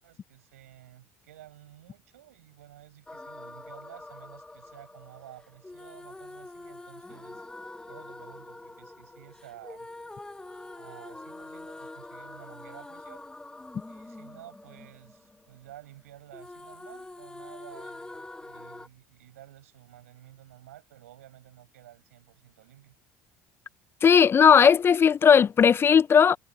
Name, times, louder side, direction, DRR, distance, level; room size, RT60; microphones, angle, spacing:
voice 1, 0.0-7.5 7.9-9.9 10.8-13.3 13.9-23.0, right 14 dB, 85° right, 7.1 m, -52 dB
sound 1, 3.1-16.0 16.3-18.9, left 2 dB, 10° left, 1.1 m, -45 dB
voice 2, 24.0-26.4, left 7 dB, 30° left, 0.4 m, -17 dB
hypercardioid pair, 70°, 7 cm